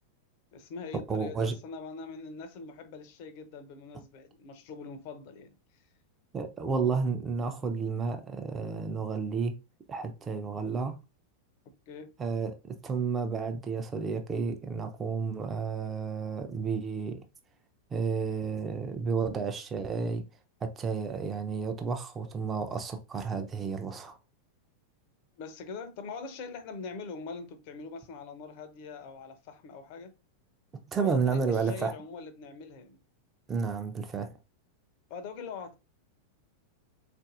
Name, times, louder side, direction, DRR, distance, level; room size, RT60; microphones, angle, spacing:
voice 1, 0.5-5.6 11.9-12.1 25.4-30.1 31.0-33.0 35.1-35.7, left 4 dB, 45° left, 0.6 m, -43 dB
voice 2, 1.1-1.5 6.3-9.5 9.9-11.0 12.2-17.2 17.9-20.2 20.6-24.2 30.9-31.9 33.5-34.3, right 5 dB, 20° right, 0.5 m, -31 dB
3.9 x 2.6 x 2.5 m
figure-of-eight pair, 90°, 0 cm